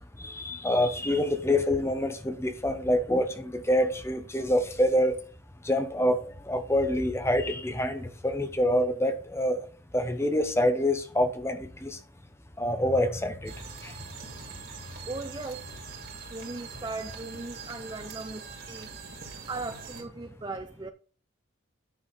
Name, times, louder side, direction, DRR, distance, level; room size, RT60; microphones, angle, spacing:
voice 1, 0.2-5.2 5.6-9.6 9.9-12.0 12.6-13.5 13.8-13.9, left 1 dB, 10° left, 0.8 m, -26 dB
sound 1, 13.4-20.0, right 5 dB, 45° right, 2.5 m, -43 dB
voice 2, 15.1-15.7 16.3-18.9 19.5-20.9, right 3 dB, 20° right, 0.4 m, -38 dB
9.8 x 6.1 x 4.1 m
head